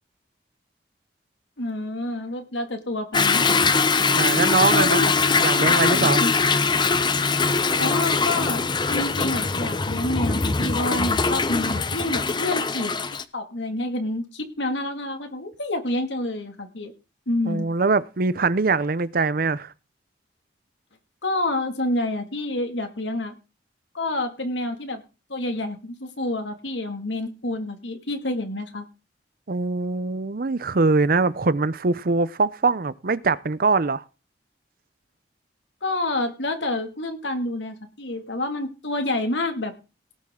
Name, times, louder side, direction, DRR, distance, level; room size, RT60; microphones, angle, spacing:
voice 1, 1.6-3.5 3.9-4.3 4.6-6.3 7.8-12.9 13.3-16.9 17.3-17.7 21.2-23.4 23.9-25.0 25.3-28.8 35.8-39.7, left 2 dB, 85° left, 2.3 m, -28 dB
Toilet flush / Drip / Trickle dribble, 3.1-13.2, left 4 dB, 25° left, 0.6 m, -22 dB
voice 2, 4.2-5.1 5.4-6.2 17.5-19.7 29.5-34.0, right 4 dB, 55° right, 0.6 m, -22 dB
18.0 x 7.4 x 3.8 m
head